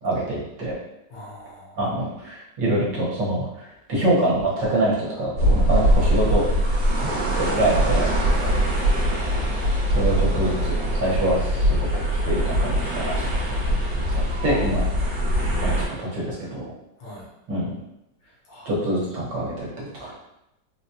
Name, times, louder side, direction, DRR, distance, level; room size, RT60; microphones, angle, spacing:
voice 1, 0.0-0.7 1.8-6.4 7.4-8.1 9.9-13.8 14.1-14.8 15.6-15.7 16.0-16.6 17.5-17.7 18.7-20.2, right 1 dB, 70° right, -6 dB, 1.7 m, -25 dB
voice 2, 1.1-1.8 8.3-8.6 17.0-17.3 18.2-18.8, equal, 75° left, -5 dB, 1.7 m, -43 dB
sound 1, 5.4-15.9, equal, 45° right, 1.2 m, -22 dB
4.2 x 2.2 x 2.7 m, 0.87 s
omnidirectional pair, 2.0 m